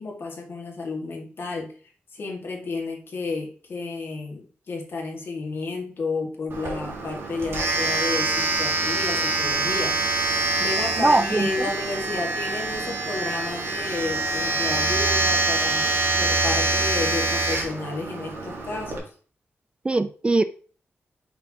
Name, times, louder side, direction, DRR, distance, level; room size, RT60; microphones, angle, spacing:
voice 1, 0.0-1.7 2.1-10.3 10.6-19.1, left 3 dB, 60° left, 1.9 m, -32 dB
Domestic sounds home sounds, 6.5-19.0, right 2 dB, 65° right, 2.0 m, -25 dB
voice 2, 11.0-11.5 19.8-20.4, right 2 dB, 25° right, 0.4 m, -20 dB
5.9 x 5.5 x 2.9 m
cardioid pair, 85°, 4 cm